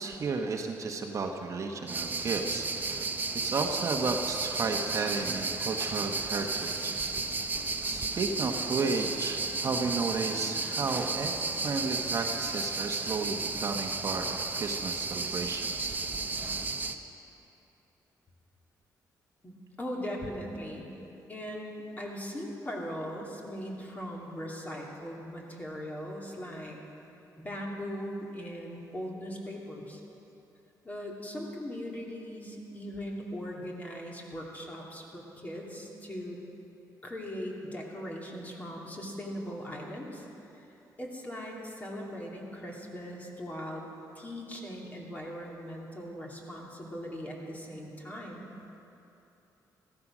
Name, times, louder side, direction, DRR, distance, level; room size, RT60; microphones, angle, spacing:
voice 1, 0.0-6.9 7.8-11.3 11.6-15.9, right 4 dB, 45° right, 3 dB, 1.2 m, -33 dB
sound 1, 1.9-17.0, right 3 dB, 25° right, 0.9 m, -33 dB
voice 2, 19.4-20.9 21.3-26.8 27.4-30.0 30.8-36.4 37.0-40.3 40.5-40.6 41.0-43.8 44.1-48.4, equal, 20° left, -2 dB, 2.7 m, -39 dB
15.0 x 14.0 x 6.2 m, 3.0 s
cardioid pair, 105°, 7 cm